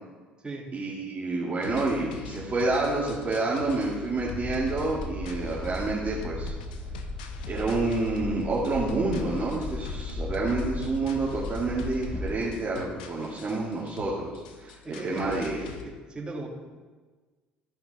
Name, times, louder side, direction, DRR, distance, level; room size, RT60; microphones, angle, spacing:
voice 1, 0.7-6.5 7.5-15.7, right 3 dB, 35° right, -6 dB, 2.2 m, -28 dB
sound 1, 1.6-15.8, left 6 dB, 85° left, 0.7 m, -44 dB
sound 2, 4.2-12.3, left 2 dB, 25° left, 1.8 m, -36 dB
voice 2, 14.8-15.4 15.8-16.5, right 2 dB, 20° right, -3 dB, 2.8 m, -37 dB
14.0 x 5.8 x 4.2 m, 1.4 s
hypercardioid pair, 60°, 5 cm